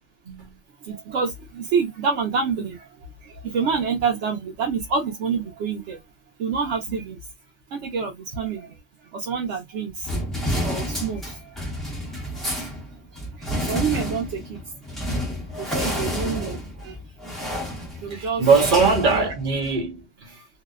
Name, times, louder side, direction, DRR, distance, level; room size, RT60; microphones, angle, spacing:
voice 1, 0.8-6.0 6.4-7.2 7.7-8.8 9.1-10.1 10.6-11.6 12.1-12.3 12.6-12.8 13.3-15.0 15.5-17.0 17.5-18.5 18.8-19.3 20.4-20.5, right 5 dB, 85° right, 0.9 m, -28 dB
sound 1, 10.0-19.8, equal, ahead, 0.7 m, -30 dB
voice 2, 18.1-20.3, right 4 dB, 50° right, 0.9 m, -21 dB
2.6 x 2.1 x 2.3 m
omnidirectional pair, 1.2 m